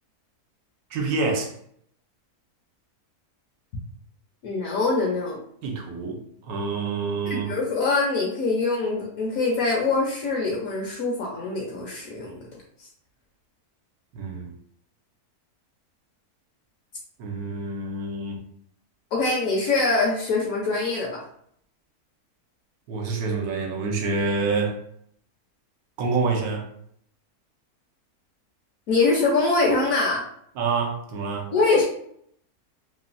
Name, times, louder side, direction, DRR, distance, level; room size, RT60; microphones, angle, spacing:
voice 1, 0.9-1.5 5.6-6.2 6.4-7.5 14.1-14.5 17.2-18.4 22.9-24.8 26.0-26.7 30.6-31.5, right 4 dB, 75° right, 1 dB, 1.1 m, -27 dB
voice 2, 4.4-5.4 7.3-12.4 12.8-12.9 19.1-21.2 28.9-30.2 31.5-31.8, left 3 dB, 70° left, -2 dB, 0.9 m, -23 dB
3.0 x 2.1 x 2.4 m, 0.67 s
omnidirectional pair, 1.6 m